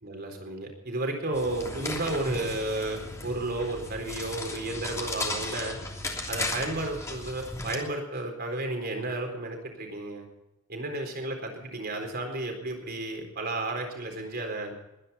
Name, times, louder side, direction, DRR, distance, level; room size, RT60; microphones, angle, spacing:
voice 1, 0.0-5.8 6.3-10.2 10.7-14.7, right 2 dB, 50° right, 3 dB, 4.1 m, -32 dB
sound 1, 1.3-7.8, left 2 dB, 15° left, 3.0 m, -36 dB
21.5 x 10.5 x 5.6 m, 0.93 s
head